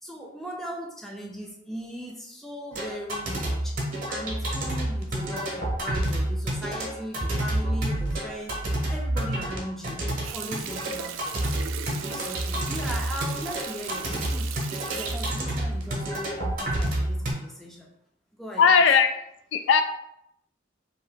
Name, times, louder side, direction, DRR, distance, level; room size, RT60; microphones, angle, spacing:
voice 1, 0.0-3.7 4.1-10.0 10.3-11.5 11.8-14.6 14.9-17.9 18.4-18.9, equal, ahead, -2 dB, 0.5 m, -38 dB
sound 1, 2.7-17.3, right 1 dB, 45° right, 0.8 m, -29 dB
Water tap faucet, 10.2-16.6 17.0-17.2, right 9 dB, 85° right, 0.3 m, -38 dB
voice 2, 18.6-19.1 19.5-19.8, left 6 dB, 75° left, 8 dB, 0.3 m, -17 dB
2.8 x 2.7 x 3.4 m, 0.77 s
head